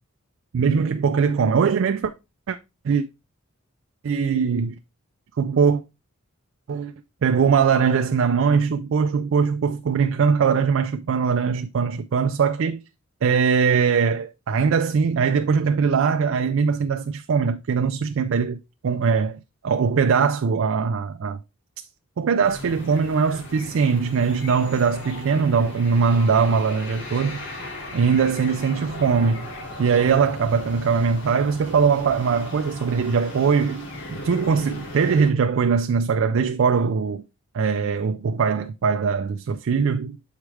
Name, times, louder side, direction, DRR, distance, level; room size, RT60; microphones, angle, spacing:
voice 1, 0.5-2.1 2.5-2.6 2.8-3.1 4.0-4.7 5.4-5.8 6.7-6.9 7.2-12.8 13.2-21.4 22.2-27.4 27.9-29.5 29.8-37.2 37.5-40.2, right 5 dB, 60° right, 0.4 m, -21 dB
sound 1, 22.4-35.3, left 1 dB, 55° left, 1.6 m, -37 dB
7.2 x 4.7 x 3.2 m
head